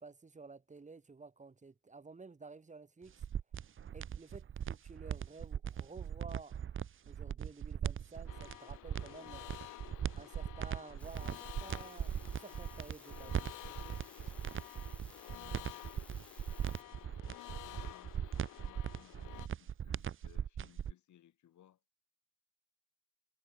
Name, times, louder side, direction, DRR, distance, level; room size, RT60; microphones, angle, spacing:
voice 1, 0.0-3.2 3.9-6.6 7.1-9.5 10.2-13.5 13.8-14.0, right 4 dB, 25° right, 2.4 m, -52 dB
sound 1, 3.1-20.9, right 8 dB, 45° right, 0.9 m, -39 dB
sound 2, 8.3-19.5, left 17 dB, 90° left, 2.1 m, -51 dB
sound 3, 11.0-16.8, left 1 dB, 5° left, 1.6 m, -60 dB
voice 2, 15.2-16.1 16.5-18.1 18.5-21.8, left 11 dB, 70° left, 4.6 m, -63 dB
cardioid pair, 90°, 30 cm